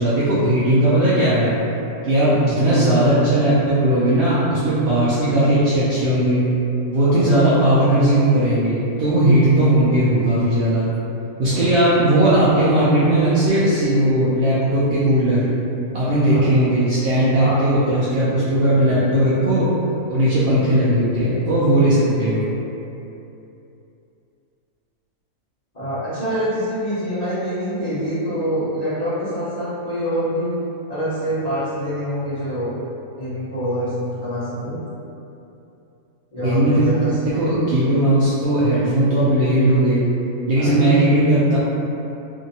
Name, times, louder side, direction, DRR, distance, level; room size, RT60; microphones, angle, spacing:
voice 1, 0.0-1.6 2.0-6.4 6.9-10.9 11.4-15.5 15.9-19.7 20.1-22.5 36.4-36.9 37.2-40.0 40.5-41.6, right 1 dB, 80° right, -10 dB, 0.5 m, -17 dB
voice 2, 25.7-30.5 30.9-32.7 33.2-34.7 36.3-37.4 40.5-40.8, equal, 35° left, -14 dB, 0.8 m, -25 dB
2.8 x 2.6 x 2.7 m, 2.8 s
omnidirectional pair, 1.6 m